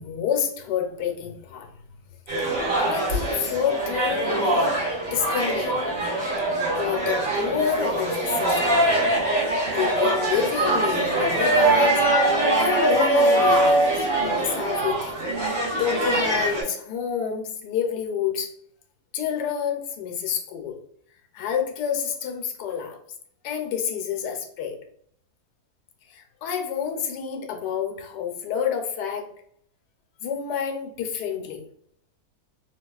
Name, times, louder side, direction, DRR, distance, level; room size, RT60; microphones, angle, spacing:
voice 1, 0.0-1.7 2.4-4.8 5.1-5.7 6.8-9.0 9.7-12.0 12.5-13.9 14.2-15.2 15.8-18.5 19.1-20.8 21.3-23.0 23.4-24.8 26.1-29.3 30.2-31.6, left 8 dB, 90° left, 4 dB, 1.3 m, -28 dB
sound 1, 2.3-16.6, right 1 dB, 85° right, 2.4 m, -23 dB
4.1 x 2.3 x 2.3 m, 0.65 s
omnidirectional pair, 1.8 m